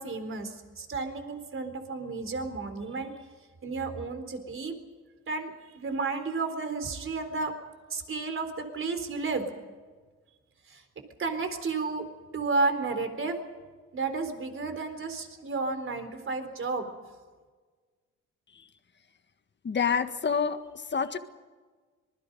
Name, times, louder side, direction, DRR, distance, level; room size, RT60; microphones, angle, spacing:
voice 1, 0.0-3.1 3.6-4.7 5.3-7.5 7.9-9.5 10.7-10.8 11.2-12.1 12.3-13.4 13.9-16.9, right 3 dB, 45° right, 8 dB, 3.9 m, -32 dB
voice 2, 19.6-21.2, left 6 dB, 35° left, 9 dB, 1.7 m, -28 dB
26.0 x 21.0 x 5.5 m, 1.4 s
cardioid pair, 90°, 30 cm